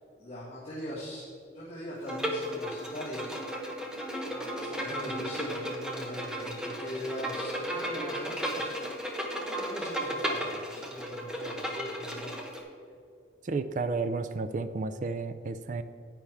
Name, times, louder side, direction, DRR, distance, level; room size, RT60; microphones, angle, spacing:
voice 1, 0.2-1.2 1.5-3.4 4.2-8.8 9.4-12.4, equal, 30° left, -9 dB, 1.9 m, -41 dB
Bowed string instrument, 2.1-12.6, equal, 5° right, 0.9 m, -35 dB
voice 2, 13.4-15.8, right 3 dB, 40° right, 11 dB, 0.4 m, -32 dB
9.8 x 9.2 x 3.5 m, 2.4 s
head